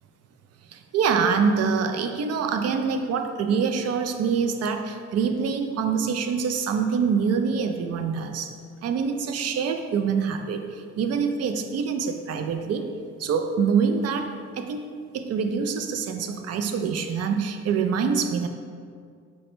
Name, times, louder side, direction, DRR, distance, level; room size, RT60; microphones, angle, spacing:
voice 1, 0.7-8.5 8.8-12.8 13.2-14.3 14.6-14.9 15.1-18.5, right 6 dB, 55° right, 7 dB, 0.4 m, -25 dB
4.8 x 2.1 x 4.3 m, 2.2 s
cardioid pair, 90°, 30 cm